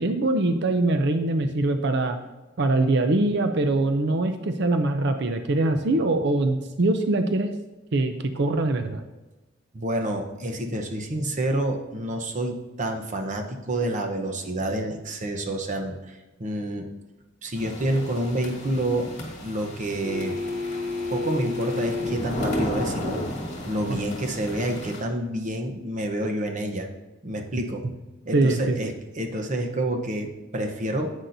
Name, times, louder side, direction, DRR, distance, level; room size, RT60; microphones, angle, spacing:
voice 1, 0.0-2.2 2.6-7.5 7.9-9.0 23.9-24.0 28.3-28.8, right 2 dB, 60° right, 7 dB, 0.5 m, -23 dB
voice 2, 9.7-16.9 17.4-19.1 19.4-20.4 21.1-23.2 23.7-26.9 27.2-27.8 28.2-31.1, right 1 dB, 40° right, 4 dB, 0.9 m, -28 dB
sound 1, 17.5-25.0, left 1 dB, 40° left, 2.1 m, -34 dB
sound 2, 20.0-22.4 25.0-25.1, left 3 dB, 85° right, 2.2 m, -31 dB
10.0 x 8.0 x 2.7 m, 1.1 s
head